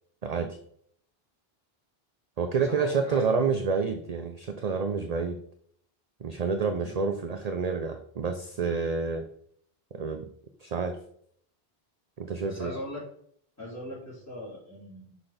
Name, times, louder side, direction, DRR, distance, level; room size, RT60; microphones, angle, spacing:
voice 1, 0.2-0.6 2.4-5.4 6.2-9.3 9.9-10.3 10.6-11.0 12.2-12.7, right 5 dB, 45° right, 6 dB, 0.6 m, -28 dB
voice 2, 2.5-3.4 6.8-7.0 12.4-13.1 13.6-15.1, left 1 dB, 15° left, -6 dB, 3.0 m, -40 dB
6.0 x 4.0 x 5.0 m, 0.65 s
omnidirectional pair, 1.0 m